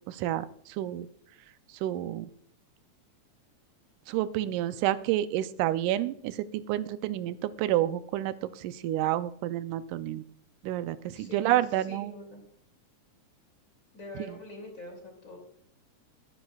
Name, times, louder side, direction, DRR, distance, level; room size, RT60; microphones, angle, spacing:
voice 1, 0.1-1.1 1.8-2.3 4.1-10.2 10.6-12.1, right 13 dB, 90° right, 13 dB, 2.1 m, -29 dB
voice 2, 11.1-12.4 13.9-15.4, left 2 dB, 25° left, 2 dB, 2.8 m, -45 dB
21.5 x 10.0 x 2.3 m, 0.66 s
omnidirectional pair, 3.5 m